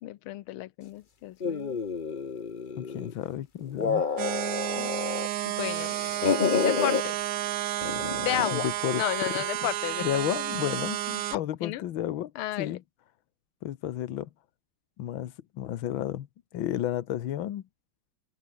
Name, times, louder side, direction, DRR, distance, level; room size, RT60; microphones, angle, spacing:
voice 1, 0.0-1.8 4.8-4.9 5.4-6.0 6.6-7.2 8.2-8.7 9.0-10.0 11.3-11.8 12.3-12.8, left 15 dB, 90° left, 1.6 m, -32 dB
sound 1, 1.4-3.2 3.6-5.3 5.6-7.0 7.8-8.6, left 5 dB, 35° left, 0.9 m, -29 dB
voice 2, 2.8-4.1 8.5-9.0 10.0-12.3 12.6-12.8 13.6-14.3 15.0-16.3 16.5-17.6, left 12 dB, 70° left, 1.8 m, -32 dB
sound 2, 4.2-11.4, right 13 dB, 75° right, 0.8 m, -31 dB
omnidirectional pair, 2.3 m